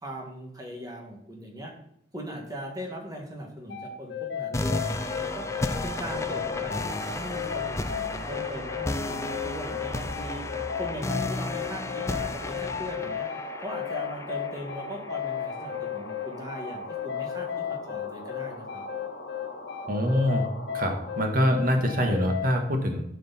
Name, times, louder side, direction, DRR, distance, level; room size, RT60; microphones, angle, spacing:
voice 1, 0.0-1.7 2.1-5.5 5.8-10.4 10.8-13.3 13.6-18.8, equal, 20° right, 0 dB, 2.0 m, -39 dB
sound 1, 3.7-22.5, left 9 dB, 85° left, 1.5 m, -34 dB
sound 2, 4.5-15.5, left 2 dB, 15° left, 0.4 m, -33 dB
sound 3, 4.7-21.3, left 2 dB, 70° left, 1.8 m, -42 dB
voice 2, 19.9-20.4 20.7-23.0, equal, 50° right, 4 dB, 1.5 m, -24 dB
13.0 x 5.1 x 4.3 m, 0.73 s
head